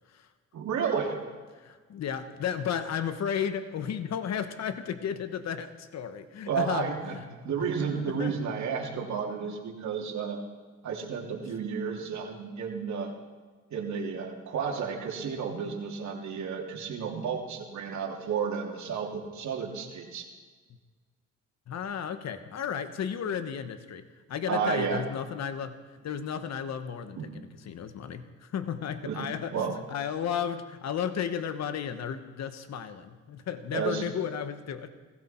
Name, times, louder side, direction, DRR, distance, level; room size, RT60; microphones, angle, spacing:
voice 1, 0.5-1.2 6.5-7.2 7.4-10.4 10.8-13.1 13.7-20.3 24.5-25.0 27.2-27.3 29.0-29.2 29.5-29.7 33.7-34.0, right 6 dB, 65° right, -1 dB, 3.1 m, -32 dB
voice 2, 1.5-7.2 8.0-8.4 9.4-9.5 12.1-12.2 21.7-25.8 26.0-34.9, left 8 dB, 60° left, 10 dB, 1.2 m, -34 dB
17.5 x 16.0 x 4.5 m, 1.4 s
cardioid pair, 90°, 30 cm